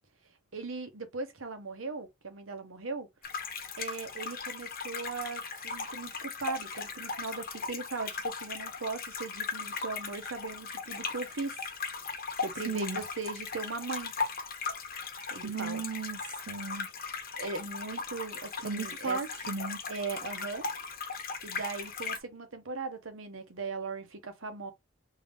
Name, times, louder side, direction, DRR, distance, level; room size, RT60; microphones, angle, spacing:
voice 1, 0.5-3.1 3.8-11.6 12.4-14.1 15.3-15.8 17.4-19.2 19.9-20.7 21.4-24.7, right 4 dB, 80° right, 1.2 m, -38 dB
sound 1, 3.2-22.2, left 5 dB, 50° left, 1.2 m, -38 dB
voice 2, 12.7-13.0 15.4-16.9 18.6-19.8, right 4 dB, 60° right, 0.5 m, -36 dB
3.6 x 2.8 x 3.5 m
head